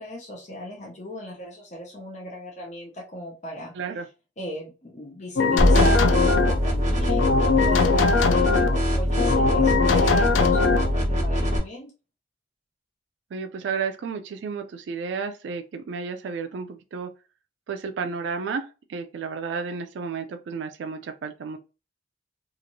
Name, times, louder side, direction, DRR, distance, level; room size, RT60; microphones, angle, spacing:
voice 1, 0.0-3.7 4.4-11.9, equal, 35° left, 0.7 m, -38 dB
voice 2, 3.7-4.1 13.3-17.1 17.7-21.6, right 5 dB, 65° right, 0.3 m, -32 dB
sound 1, 5.4-6.6 7.1-8.8 9.2-10.9, left 4 dB, 70° left, 0.3 m, -21 dB
sound 2, 5.6-11.6, equal, 40° right, 0.9 m, -22 dB
2.9 x 2.5 x 2.6 m
head